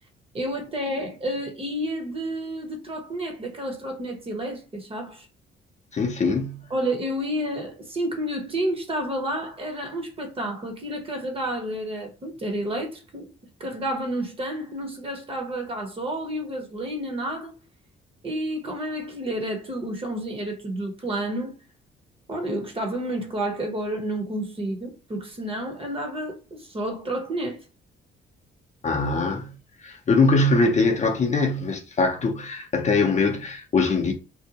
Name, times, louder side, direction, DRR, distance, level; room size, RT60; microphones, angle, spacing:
voice 1, 0.3-5.3 6.7-13.3 13.6-17.5 18.2-21.5 22.3-27.6, right 1 dB, 30° right, 0.9 m, -30 dB
voice 2, 5.9-6.6 28.8-29.5 29.8-34.1, left 3 dB, 35° left, 0.5 m, -22 dB
2.6 x 2.1 x 2.8 m
cardioid pair, 90°, 20 cm